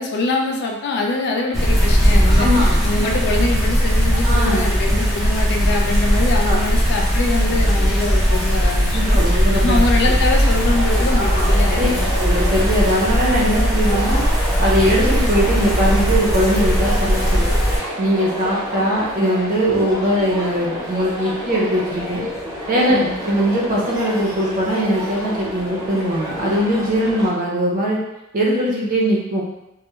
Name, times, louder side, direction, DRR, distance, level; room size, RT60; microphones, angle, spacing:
voice 1, 0.0-9.2 9.5-12.1 22.9-23.2, left 3 dB, 50° left, 1 dB, 0.3 m, -24 dB
sound 1, 1.5-17.8, equal, ahead, 0.6 m, -18 dB
voice 2, 2.4-2.8 4.1-4.7 6.5-6.6 8.9-9.8 11.2-11.9 12.1-14.2 14.6-17.5 18.0-22.3 22.7-23.0 23.2-28.0 28.3-29.4, equal, 40° right, -4 dB, 0.6 m, -20 dB
sound 2, 10.2-27.3, equal, 15° right, 0.9 m, -29 dB
2.2 x 2.1 x 2.9 m, 0.88 s
head